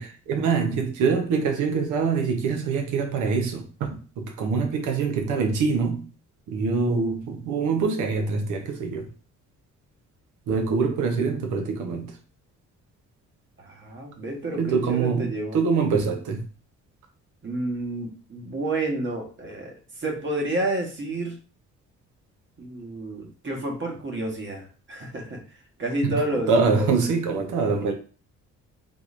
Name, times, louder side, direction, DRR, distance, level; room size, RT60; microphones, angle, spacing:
voice 1, 0.0-6.1 6.5-9.1 10.5-12.1 14.5-16.4 26.1-27.9, right 5 dB, 85° right, 0.8 m, -24 dB
voice 2, 11.0-11.4 13.6-15.6 17.4-21.4 22.6-25.4 25.8-26.9, right 2 dB, 40° right, 1.2 m, -30 dB
3.8 x 3.1 x 2.5 m
cardioid pair, 90°, 30 cm